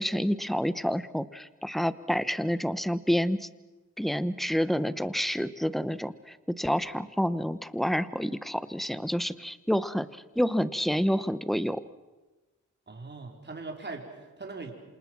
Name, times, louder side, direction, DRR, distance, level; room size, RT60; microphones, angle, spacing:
voice 1, 0.0-3.5 4.0-11.8, equal, ahead, 14 dB, 1.0 m, -28 dB
voice 2, 12.9-14.7, right 3 dB, 35° right, 2 dB, 4.7 m, -40 dB
27.5 x 27.5 x 6.2 m, 1.2 s
cardioid pair, 85°, 32 cm